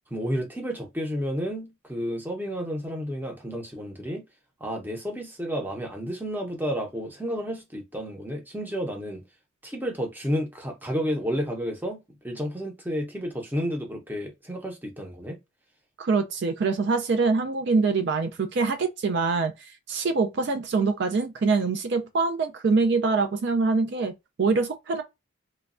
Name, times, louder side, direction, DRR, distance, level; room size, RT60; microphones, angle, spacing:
voice 1, 0.1-4.2 4.6-9.2 9.6-12.0 12.2-15.4, equal, 10° right, 0.6 m, -31 dB
voice 2, 16.0-24.1 24.4-25.0, right 4 dB, 55° right, 0.4 m, -24 dB
3.0 x 2.2 x 2.4 m
head